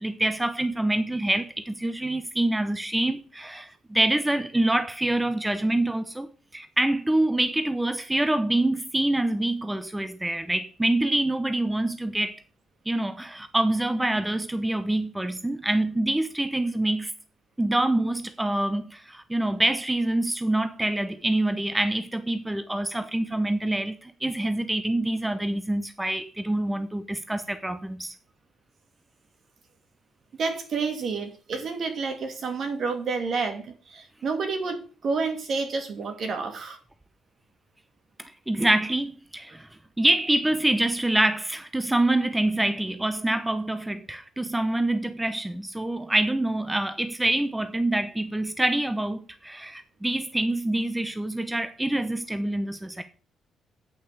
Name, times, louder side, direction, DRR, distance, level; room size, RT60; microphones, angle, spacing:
voice 1, 0.0-6.3 6.5-12.4 12.9-17.1 17.6-28.1 38.2-39.7 40.0-53.0, right 1 dB, 10° right, 0.8 m, -26 dB
voice 2, 30.4-36.8, right 4 dB, 55° right, 2.5 m, -29 dB
8.8 x 5.5 x 6.8 m
cardioid pair, 90°, 0 cm